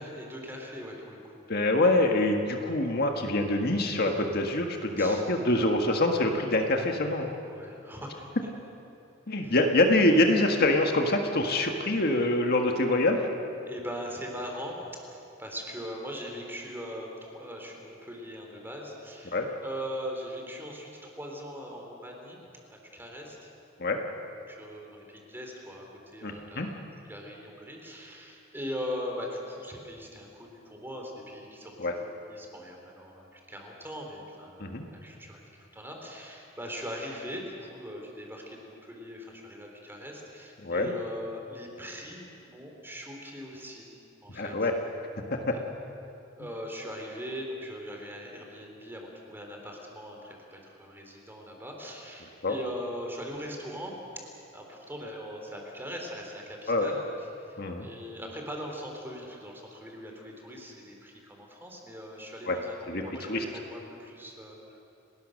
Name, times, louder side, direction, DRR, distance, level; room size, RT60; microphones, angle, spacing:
voice 1, 0.0-1.5 5.0-5.2 5.6-5.8 7.4-8.3 9.4-9.6 13.6-14.8 15.1-22.4 22.7-23.5 24.5-26.8 27.1-31.8 32.1-35.4 35.7-43.9 44.2-44.7 45.5-45.7 46.3-54.0 54.5-57.1 57.4-64.8, equal, 10° right, 1 dB, 3.7 m, -40 dB
voice 2, 1.5-7.3 9.3-13.2 19.3-19.5 23.8-24.0 26.2-26.7 31.8-31.9 34.6-34.9 40.6-40.9 44.3-44.7 45.3-45.4 52.4-52.5 56.7-56.9 57.6-57.9 62.5-62.6 62.9-63.4, left 2 dB, 50° left, 3 dB, 1.7 m, -25 dB
30.0 x 19.0 x 6.6 m, 2.8 s
head